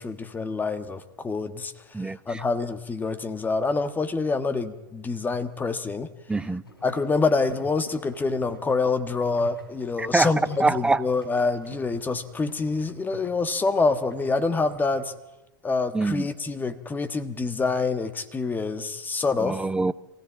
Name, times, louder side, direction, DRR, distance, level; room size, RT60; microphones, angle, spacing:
voice 1, 0.0-1.7 2.3-6.1 6.8-15.1 15.6-19.6, left 4 dB, 15° left, 10 dB, 1.4 m, -26 dB
voice 2, 1.9-2.4 6.3-6.6 10.1-10.3 10.6-11.0 15.9-16.3 19.4-19.9, right 3 dB, 10° right, 17 dB, 0.7 m, -24 dB
sound 1, 6.6-15.1, equal, 90° left, 3.6 m, -48 dB
25.0 x 16.5 x 8.7 m, 1.1 s
figure-of-eight pair, 95°, 12 cm